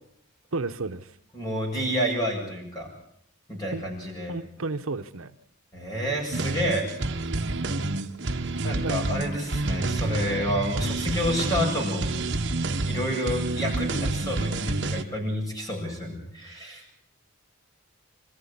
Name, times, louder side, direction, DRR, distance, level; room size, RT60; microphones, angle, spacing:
voice 1, 0.5-1.1 3.7-3.9 4.3-5.3 8.8-9.0, right 3 dB, 75° right, 8 dB, 1.0 m, -32 dB
voice 2, 1.3-2.9 3.5-4.3 5.7-6.9 8.6-12.1 12.9-16.8, equal, 15° left, 0 dB, 7.8 m, -29 dB
sound 1, 6.3-15.0, right 2 dB, 55° right, 1.3 m, -28 dB
25.5 x 14.5 x 8.5 m, 0.74 s
head